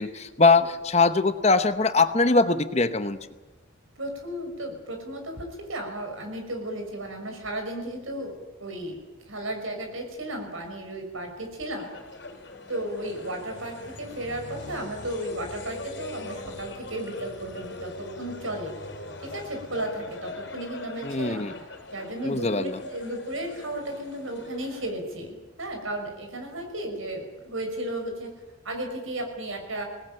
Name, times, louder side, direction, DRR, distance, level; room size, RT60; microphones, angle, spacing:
voice 1, 0.0-3.2 21.0-21.5 22.2-22.8, left 3 dB, 30° left, 11 dB, 0.9 m, -22 dB
voice 2, 4.0-8.3 8.6-9.0 9.3-11.9 12.7-17.9 18.2-18.7 19.2-21.4 21.9-28.3 28.6-29.8, right 1 dB, 75° right, 4 dB, 5.9 m, -34 dB
sound 1, 11.8-24.9, left 2 dB, 55° left, 3.9 m, -41 dB
22.0 x 19.0 x 9.0 m, 1.1 s
head